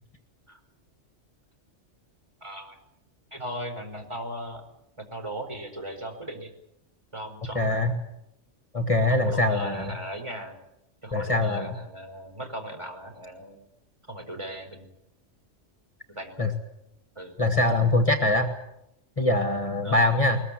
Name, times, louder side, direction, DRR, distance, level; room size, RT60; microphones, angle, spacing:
voice 1, 2.4-2.8 3.3-4.6 5.0-6.5 7.1-7.8 9.1-10.6 11.0-13.6 14.1-14.9 16.1-16.4 17.1-17.4 19.8-20.0, right 1 dB, 25° right, 3 dB, 4.6 m, -37 dB
voice 2, 7.5-7.9 8.7-9.9 11.1-11.8 16.4-16.5 17.4-18.5 19.2-20.4, left 2 dB, 30° left, 5 dB, 1.9 m, -23 dB
22.0 x 21.0 x 8.8 m, 0.83 s
omnidirectional pair, 1.2 m